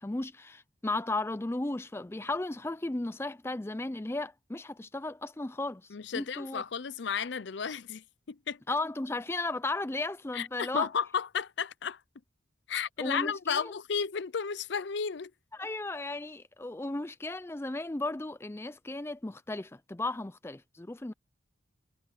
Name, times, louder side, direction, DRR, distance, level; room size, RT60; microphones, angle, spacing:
voice 1, 0.0-6.6 8.7-10.9 13.0-13.7 15.5-21.1, left 2 dB, 10° left, 0.4 m, -35 dB
voice 2, 5.9-8.6 10.3-12.0 12.7-15.3, left 6 dB, 60° left, 0.5 m, -33 dB
head